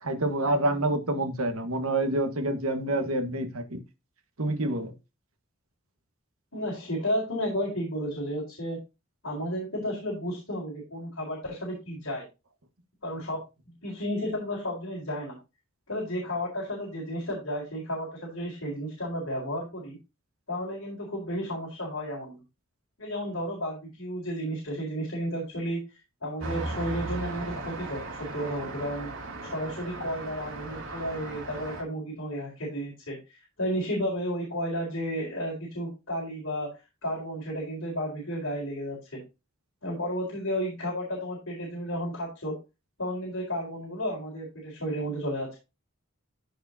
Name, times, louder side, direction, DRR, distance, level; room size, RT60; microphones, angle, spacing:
voice 1, 0.0-3.8 4.4-4.9, right 1 dB, 90° right, 1.5 m, -27 dB
voice 2, 6.5-8.8 9.2-12.2 13.0-13.4 13.8-15.4 15.9-20.0 20.5-22.4 23.0-25.8 26.2-29.1 29.4-36.7 37.0-39.2 39.8-42.5 43.0-45.6, equal, 70° left, 4.2 m, -32 dB
Traffic noise roadway noise, 26.4-31.8, right 2 dB, 70° right, 2.5 m, -37 dB
14.5 x 4.8 x 2.7 m
head